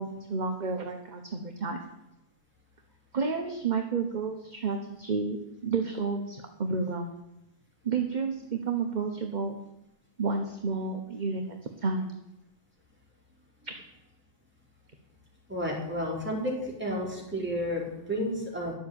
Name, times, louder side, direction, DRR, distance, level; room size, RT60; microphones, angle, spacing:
voice 1, 0.0-1.8 3.1-5.4 5.6-7.1 7.8-9.6 10.2-11.4 11.8-12.1 13.6-13.7, right 4 dB, 30° right, 4 dB, 1.0 m, -31 dB
voice 2, 15.5-18.7, equal, 5° right, -3 dB, 4.2 m, -31 dB
11.5 x 7.7 x 8.7 m, 0.90 s
omnidirectional pair, 1.7 m